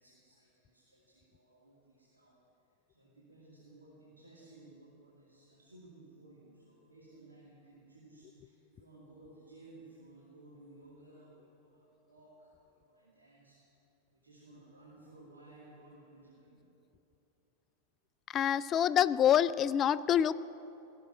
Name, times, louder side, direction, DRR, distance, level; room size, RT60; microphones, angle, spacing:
voice 1, 0.0-2.4 2.9-13.6 14.1-16.6, right 2 dB, 75° right, -6 dB, 2.4 m, -57 dB
voice 2, 18.3-20.4, left 10 dB, 30° left, 17 dB, 0.3 m, -26 dB
17.0 x 7.0 x 9.3 m, 3.0 s
figure-of-eight pair, 90°, 0 cm